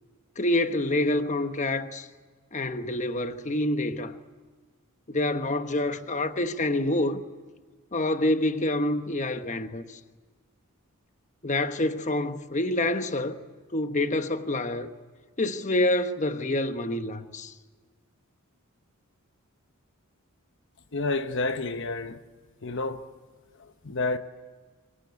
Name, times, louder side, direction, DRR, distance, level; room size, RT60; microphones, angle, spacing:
voice 1, 0.4-2.1 2.5-4.2 5.1-7.2 7.9-10.0 11.4-13.4 13.7-14.9 15.4-17.5, left 1 dB, 35° left, 1.2 m, -27 dB
voice 2, 20.9-22.2 22.6-23.0 23.8-24.2, left 3 dB, 55° left, 1.0 m, -29 dB
26.0 x 23.5 x 8.3 m
head